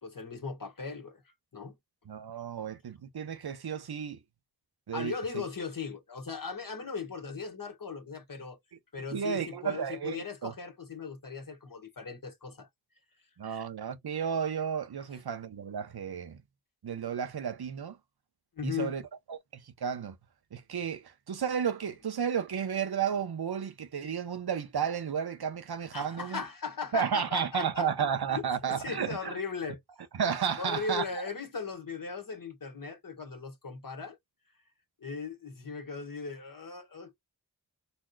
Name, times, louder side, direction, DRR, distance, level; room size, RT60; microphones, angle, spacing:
voice 1, 0.0-1.8 4.9-8.6 8.9-12.7 15.1-15.2 18.6-19.0 25.9-28.1 28.3-29.8 30.5-34.2 35.0-37.1, left 5 dB, 55° left, 1.5 m, -38 dB
voice 2, 2.1-4.2 4.9-5.1 9.1-10.5 13.4-16.4 16.8-18.0 18.6-19.0 19.3-19.4 19.8-20.2 20.5-26.4 26.9-29.3 30.1-31.0, right 7 dB, 65° right, 0.8 m, -32 dB
4.1 x 2.9 x 2.2 m
wide cardioid pair, 60°, 41 cm